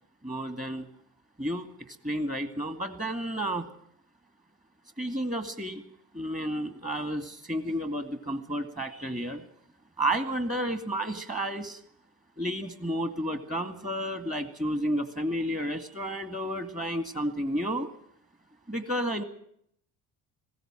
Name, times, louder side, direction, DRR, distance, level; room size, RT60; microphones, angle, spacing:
voice 1, 0.2-0.9 1.4-1.7 2.0-3.7 5.0-5.8 6.1-9.4 10.0-11.8 12.4-17.9 18.7-19.2, right 1 dB, 15° right, 8 dB, 2.1 m, -31 dB
20.0 x 17.0 x 7.6 m, 0.69 s
hypercardioid pair, 60°, 44 cm